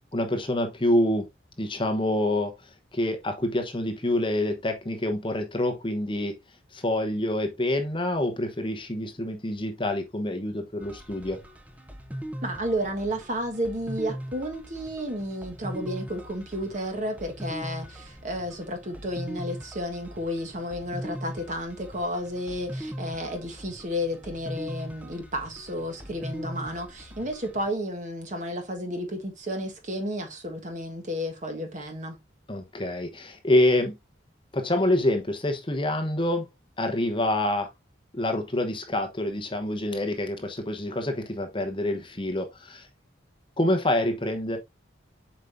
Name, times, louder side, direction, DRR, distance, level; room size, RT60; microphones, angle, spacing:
voice 1, 0.1-1.3 1.6-6.4 6.7-11.4 32.5-34.0 34.5-36.5 36.8-37.7 38.1-42.9 43.6-44.6, left 1 dB, 25° left, 1.0 m, -26 dB
sound 1, 10.8-27.7, equal, 10° right, 0.6 m, -40 dB
voice 2, 12.4-32.2, equal, 40° right, 1.4 m, -32 dB
7.4 x 5.0 x 2.6 m
head